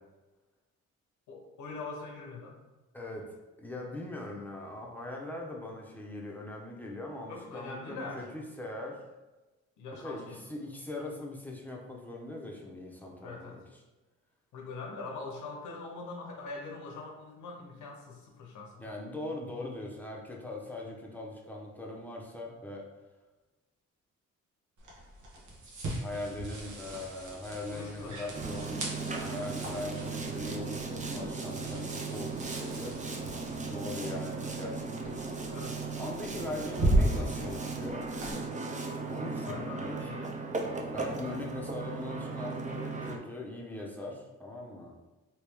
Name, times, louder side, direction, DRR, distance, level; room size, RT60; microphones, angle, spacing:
voice 1, 1.3-2.6 7.3-8.3 9.8-10.4 13.2-13.6 14.5-18.8 27.7-28.3 35.5-35.8 39.4-40.3, left 3 dB, 80° left, 1 dB, 0.8 m, -42 dB
voice 2, 2.9-9.0 10.0-13.6 18.8-22.9 26.0-33.0 33.6-35.6 36.0-38.1 39.1-40.1 40.9-45.0, left 2 dB, 5° left, -2 dB, 0.8 m, -41 dB
sound 1, 24.8-38.3, right 1 dB, 75° right, 1.2 m, -36 dB
Boat Water vehicle, 28.3-43.2, right 4 dB, 25° right, 0.6 m, -37 dB
3.0 x 2.9 x 3.4 m, 1.1 s
cardioid pair, 75°, 30 cm